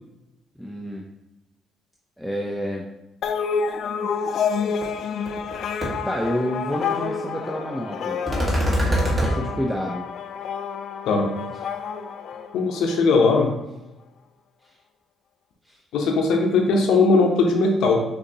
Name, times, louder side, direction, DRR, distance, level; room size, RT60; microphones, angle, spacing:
voice 1, 0.6-1.0 2.2-2.8 6.0-8.2 9.2-10.0 15.7-15.8, equal, ahead, -1 dB, 0.5 m, -28 dB
sound 1, 3.2-13.0, left 6 dB, 65° left, 0.3 m, -29 dB
sound 2, 4.8-4.9 5.3-5.5 5.8-5.9 8.3-9.3, equal, 25° right, 1.5 m, -22 dB
voice 2, 12.5-13.5 15.9-18.0, left 3 dB, 85° left, 2 dB, 0.8 m, -19 dB
6.3 x 2.8 x 2.8 m, 0.96 s
cardioid pair, 90°, 0 cm